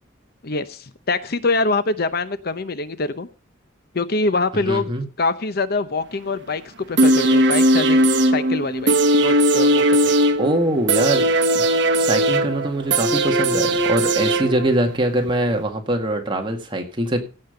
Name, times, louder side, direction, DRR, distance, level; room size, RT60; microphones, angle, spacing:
voice 1, 0.4-3.3 3.9-4.9 5.2-10.1, left 3 dB, 55° left, 12 dB, 0.8 m, -24 dB
voice 2, 4.7-5.1 10.4-11.2 11.5-11.6 12.0-17.2, right 1 dB, 25° right, 3 dB, 1.9 m, -23 dB
sound 1, 7.0-14.9 15.3-15.4, right 1 dB, 65° right, 1.1 m, -18 dB
16.5 x 5.6 x 6.7 m, 0.36 s
head